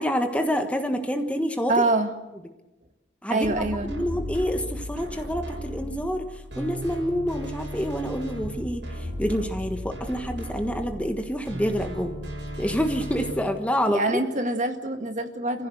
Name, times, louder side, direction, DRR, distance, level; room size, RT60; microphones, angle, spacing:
voice 1, 0.0-1.7 3.2-6.3 6.6-8.8 9.2-12.2 12.6-14.2, equal, 5° left, 5 dB, 1.4 m, -27 dB
voice 2, 1.7-2.1 3.3-3.9 13.9-15.7, right 2 dB, 40° right, 6 dB, 1.8 m, -25 dB
sound 1, 3.4-13.3, equal, 80° right, 7.4 m, -35 dB
28.0 x 15.5 x 7.9 m, 1.0 s
head